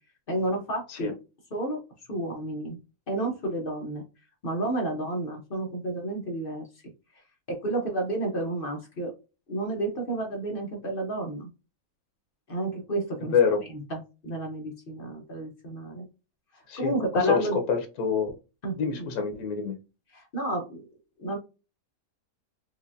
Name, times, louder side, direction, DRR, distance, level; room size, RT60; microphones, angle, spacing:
voice 1, 0.3-1.1 1.5-1.8 2.1-2.8 3.1-4.0 4.4-6.6 7.5-9.1 9.5-11.5 12.5-13.3 13.7-16.0 16.8-17.6 18.6-19.1 20.1-20.8 21.2-21.4, right 1 dB, 45° left, 1 dB, 0.8 m, -31 dB
voice 2, 13.2-13.6 16.7-18.3 18.8-19.8, left 6 dB, 85° left, 4 dB, 1.2 m, -26 dB
4.7 x 2.3 x 2.5 m, 0.30 s
omnidirectional pair, 1.5 m